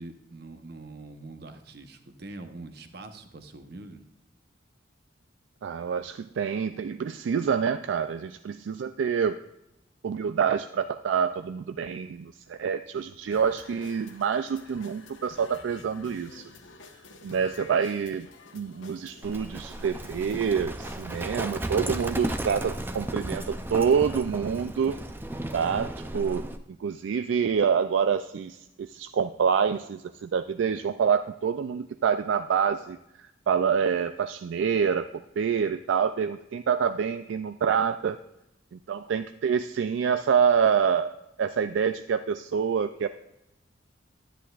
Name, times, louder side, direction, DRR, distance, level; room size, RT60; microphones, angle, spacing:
voice 1, 0.0-4.0, right 2 dB, 55° right, 8 dB, 0.9 m, -44 dB
voice 2, 5.6-9.4 10.0-16.4 17.2-18.3 18.5-25.0 25.5-26.4 26.8-33.0 33.5-38.2 38.7-41.1 41.4-43.1, right 7 dB, 75° right, 10 dB, 0.3 m, -27 dB
sound 1, 13.3-21.3, left 3 dB, 80° left, 1.1 m, -50 dB
Livestock farm animals working animals, 19.2-26.6, right 1 dB, 10° right, 0.4 m, -34 dB
10.0 x 10.0 x 2.4 m, 0.87 s
head